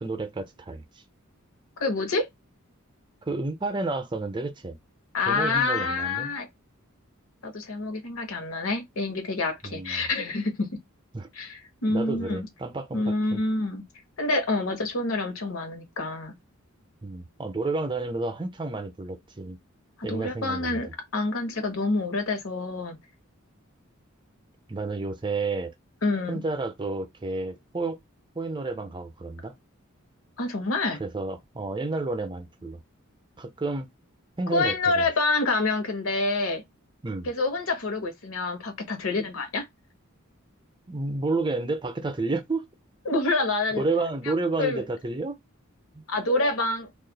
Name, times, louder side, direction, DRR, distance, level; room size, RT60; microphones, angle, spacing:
voice 1, 0.0-0.8 3.2-4.8 5.3-6.3 9.6-10.1 11.1-11.3 11.9-13.4 17.0-19.6 20.0-20.8 24.7-25.7 26.3-28.0 28.4-29.5 31.0-32.8 33.4-33.9 34.4-35.1 37.0-37.3 40.9-42.7 43.7-45.4 45.9-46.0, right 3 dB, 20° right, 0.5 m, -30 dB
voice 2, 1.8-2.3 5.1-6.5 7.4-10.7 11.4-12.5 12.9-13.8 14.2-16.3 20.1-23.0 26.0-26.4 30.4-31.0 34.5-36.6 37.2-39.6 43.0-43.8 44.2-44.3 44.6-44.8 46.1-46.9, left 3 dB, 75° left, 1.0 m, -27 dB
2.6 x 2.4 x 3.8 m
head